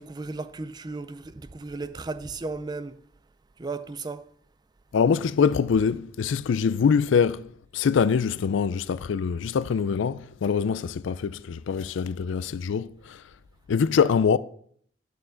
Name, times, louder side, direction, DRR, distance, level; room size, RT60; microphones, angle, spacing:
voice 1, 0.0-3.0 3.6-4.3, right 3 dB, 20° right, 0.4 m, -35 dB
voice 2, 4.9-7.5 7.7-13.2 13.7-14.4, left 6 dB, 75° left, 0.4 m, -24 dB
11.5 x 6.4 x 3.8 m
head